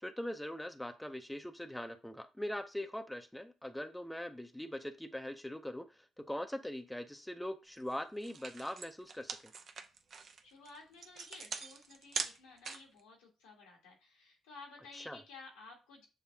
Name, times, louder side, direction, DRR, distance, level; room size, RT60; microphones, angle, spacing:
voice 1, 0.0-9.4 14.9-15.2, left 1 dB, 5° left, 7 dB, 0.6 m, -42 dB
sound 1, 7.8-7.9 8.2-13.0, right 5 dB, 55° right, 0.5 m, -42 dB
voice 2, 10.1-16.1, left 3 dB, 85° left, -1 dB, 1.3 m, -54 dB
6.8 x 2.4 x 2.7 m, 0.29 s
hypercardioid pair, 45°, 0 cm